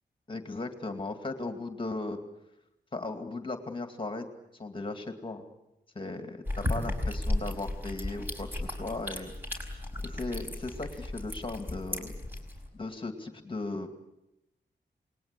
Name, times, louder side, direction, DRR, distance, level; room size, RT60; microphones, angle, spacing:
voice 1, 0.3-2.2 2.9-4.3 4.6-5.5 5.9-9.7 10.0-12.1 12.7-13.9, left 2 dB, 30° left, 6 dB, 2.3 m, -37 dB
sound 1, 6.5-12.7, left 1 dB, 10° right, 5.0 m, -35 dB
28.0 x 20.5 x 8.3 m, 0.88 s
wide cardioid pair, 170°, 18 cm